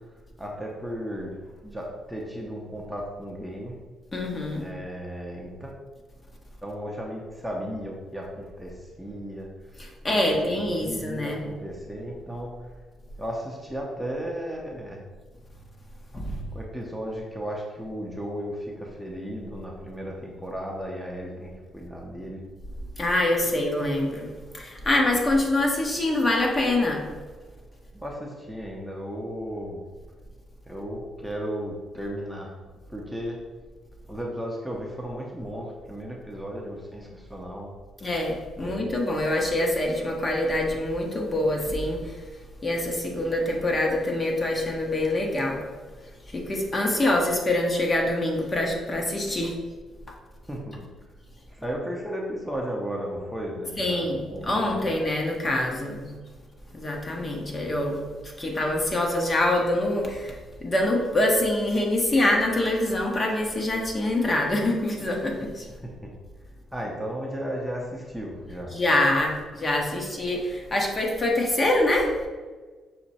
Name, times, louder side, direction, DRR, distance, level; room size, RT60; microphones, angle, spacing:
voice 1, 0.0-3.7 4.6-5.7 6.6-9.8 10.3-12.7 13.2-15.0 16.5-22.4 27.9-29.8 30.7-32.5 32.9-33.4 34.1-37.7 38.6-38.7 50.5-50.9 51.5-54.8 65.8-66.1 66.7-68.7, equal, 5° right, -2 dB, 0.7 m, -35 dB
voice 2, 4.1-4.6 10.0-11.4 16.1-16.4 23.0-27.0 38.0-42.0 42.6-45.6 46.3-49.5 53.8-56.0 56.7-58.0 58.4-65.7 68.7-72.1, left 1 dB, 30° left, 0 dB, 0.9 m, -25 dB
5.8 x 2.1 x 4.1 m, 1.4 s
cardioid pair, 90°, 0 cm